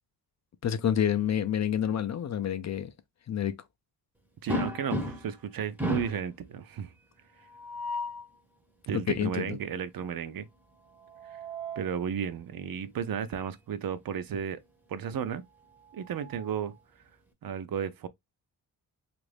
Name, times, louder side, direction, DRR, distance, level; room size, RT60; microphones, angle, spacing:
voice 1, 0.6-2.9 3.3-3.6 8.9-9.6, left 9 dB, 45° left, 0.4 m, -28 dB
voice 2, 4.4-6.9 8.9-10.5 11.3-11.4 11.8-14.6 14.9-15.4 15.9-16.7 17.4-18.1, right 8 dB, 60° right, 0.5 m, -33 dB
sound 1, 4.5-5.4 5.8-6.3 7.5-8.3 10.9-11.9 13.4-13.5 13.9-14.0 15.5-16.8, equal, 5° right, 0.7 m, -35 dB
3.0 x 2.5 x 3.2 m
wide cardioid pair, 125°, 40 cm